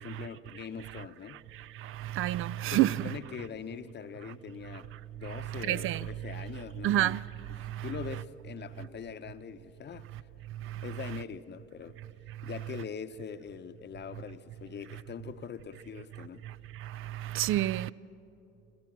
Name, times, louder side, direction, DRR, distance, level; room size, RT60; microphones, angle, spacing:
voice 1, 0.0-1.4 2.7-4.9 5.2-7.2 7.6-10.1 10.8-12.0 12.4-16.4, left 7 dB, 30° left, 0.9 m, -42 dB
voice 2, 2.1-3.1 5.7-6.1 6.8-7.2 17.3-17.9, right 14 dB, 40° right, 0.4 m, -27 dB
25.0 x 14.5 x 7.5 m
hypercardioid pair, 65°, 34 cm